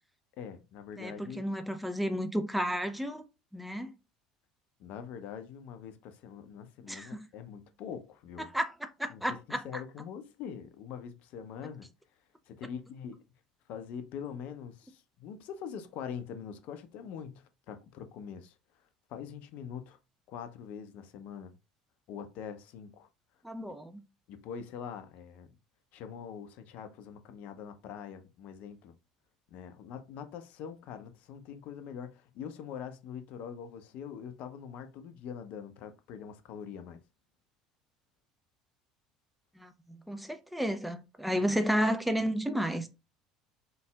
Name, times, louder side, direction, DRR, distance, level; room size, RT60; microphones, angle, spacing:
voice 1, 0.4-1.4 4.8-8.5 9.1-11.9 12.5-13.2 13.7-18.6 19.1-20.0 20.3-21.6 22.1-23.1 24.3-25.6 25.9-28.9 29.5-37.0 41.3-41.4, left 7 dB, 55° left, 0.6 m, -43 dB
voice 2, 1.0-3.2 3.5-4.0 6.9-7.3 8.5-9.6 23.4-24.0 39.6-42.9, equal, ahead, 0.7 m, -32 dB
4.1 x 3.8 x 2.3 m
figure-of-eight pair, 65°, 3 cm